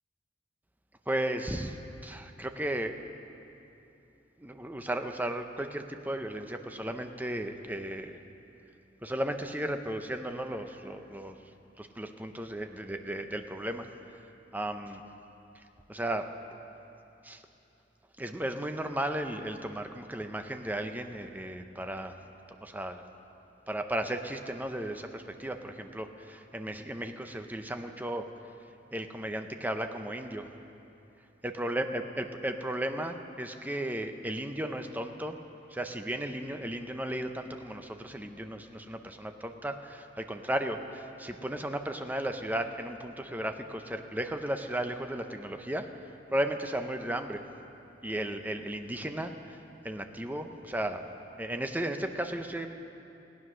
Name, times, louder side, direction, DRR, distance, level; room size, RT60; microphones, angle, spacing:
voice 1, 1.1-1.8 2.0-3.0 4.4-8.2 9.0-11.4 11.8-13.9 14.5-15.0 15.9-16.3 17.2-17.4 18.2-22.2 22.6-23.0 23.7-28.3 28.9-30.5 31.4-35.4 35.7-45.9 46.3-47.4 48.0-49.6 49.8-51.0 51.4-52.7, right 1 dB, 10° right, 6 dB, 0.6 m, -35 dB
17.0 x 9.6 x 6.2 m, 2.9 s
head